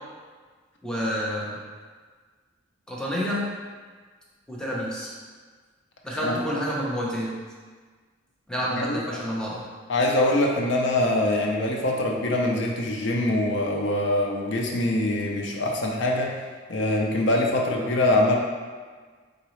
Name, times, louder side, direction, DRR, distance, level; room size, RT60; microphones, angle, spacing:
voice 1, 0.8-1.6 2.9-3.4 4.5-5.1 6.0-7.4 8.5-9.6, equal, 5° left, -6 dB, 0.7 m, -29 dB
voice 2, 8.7-9.2 9.9-16.3 16.7-18.4, left 1 dB, 65° left, 0 dB, 0.5 m, -24 dB
3.9 x 3.7 x 3.1 m, 1.5 s
head